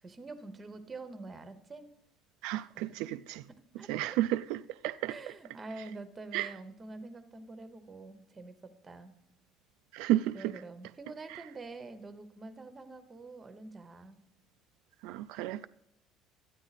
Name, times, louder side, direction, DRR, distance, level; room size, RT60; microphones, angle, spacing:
voice 1, 0.0-1.9 2.7-3.0 3.8-4.2 5.1-9.1 10.3-14.2, right 3 dB, 20° right, 0.9 m, -46 dB
voice 2, 2.4-3.5 3.9-5.2 6.3-6.5 9.9-10.6 11.3-11.4 15.0-15.7, right 14 dB, 80° right, 0.3 m, -32 dB
12.5 x 9.3 x 4.1 m
cardioid pair, 165°, 0 cm